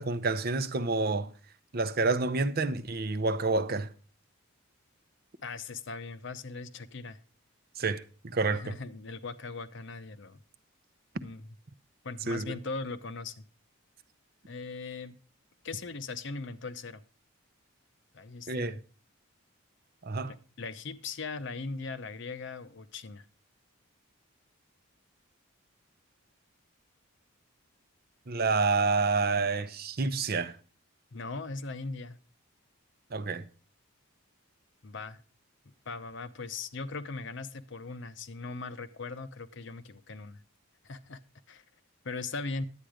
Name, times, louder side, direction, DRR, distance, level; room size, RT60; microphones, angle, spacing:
voice 1, 0.0-1.3 1.7-3.9 7.8-8.8 12.3-12.5 18.5-18.7 20.0-20.3 28.3-30.6 33.1-33.5, right 3 dB, 45° right, 0.6 m, -28 dB
voice 2, 5.4-7.2 8.5-10.4 11.2-11.5 12.0-13.5 14.5-15.2 15.6-17.0 18.1-18.8 20.3-23.3 31.1-32.2 34.8-35.2 35.9-40.4 40.8-41.2 41.5-41.6 42.0-42.7, left 4 dB, 55° left, 0.7 m, -39 dB
10.5 x 9.0 x 4.9 m
head